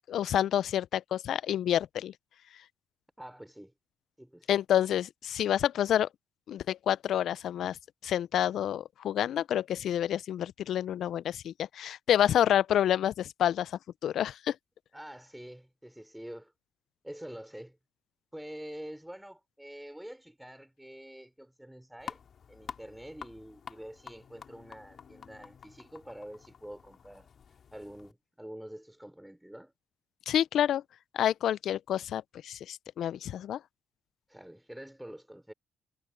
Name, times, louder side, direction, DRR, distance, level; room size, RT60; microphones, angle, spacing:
voice 1, 0.1-2.1 4.5-6.1 6.5-7.8 8.0-13.7 14.0-14.6 30.3-30.8 31.1-33.6, left 10 dB, 70° left, 0.4 m, -28 dB
voice 2, 3.2-3.7 4.2-4.5 14.9-16.5 17.0-17.8 18.3-22.2 22.5-27.3 27.7-29.7 34.3-35.5, right 1 dB, 5° right, 4.0 m, -46 dB
sound 1, 22.0-28.1, left 7 dB, 55° left, 2.7 m, -49 dB
cardioid pair, 90°, 0 cm